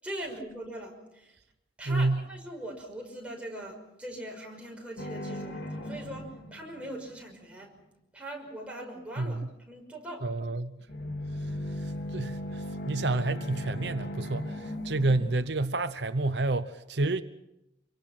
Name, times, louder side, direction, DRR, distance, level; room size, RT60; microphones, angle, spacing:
voice 1, 0.0-1.4 1.8-7.7 8.1-10.3, right 1 dB, 5° right, 6.0 m, -41 dB
voice 2, 1.9-2.2 9.2-9.5 10.2-10.8 11.4-17.2, right 2 dB, 75° right, 0.9 m, -29 dB
sound 1, 5.0-7.2 10.8-15.4, left 1 dB, 75° left, 2.9 m, -37 dB
27.0 x 23.5 x 5.9 m
head